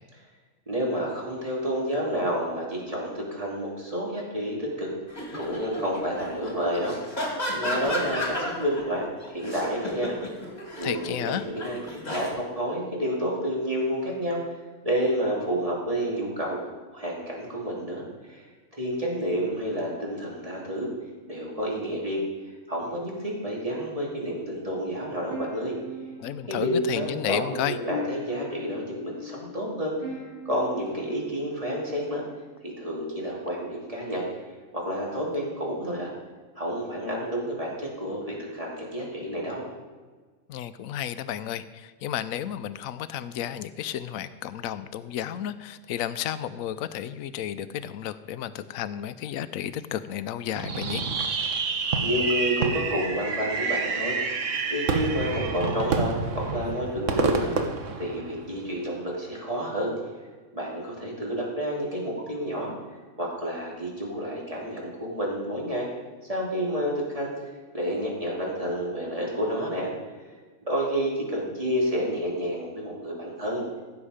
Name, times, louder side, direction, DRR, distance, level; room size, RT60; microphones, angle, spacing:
voice 1, 0.7-4.9 5.3-7.0 7.5-10.2 10.8-14.4 14.8-18.5 18.8-20.9 21.3-22.2 22.7-25.8 26.5-30.2 30.4-32.2 32.6-34.2 34.7-36.1 36.5-39.7 51.5-54.2 54.7-57.5 58.0-59.9 60.5-62.7 63.2-65.9 66.3-67.3 67.7-69.9 70.6-73.8, equal, 25° right, -4 dB, 2.9 m, -30 dB
sound 1, 5.1-8.8 9.2-12.3, equal, 30° left, 2.5 m, -33 dB
voice 2, 10.8-11.5 26.2-27.8 40.5-51.0, left 10 dB, 80° left, 13 dB, 1.0 m, -32 dB
Marcato Harp, 25.3-32.4, left 2 dB, 40° right, 3.3 m, -41 dB
Fireworks, 50.6-58.7, right 4 dB, 65° right, 1.4 m, -28 dB
15.5 x 7.1 x 5.0 m, 1.4 s
omnidirectional pair, 1.4 m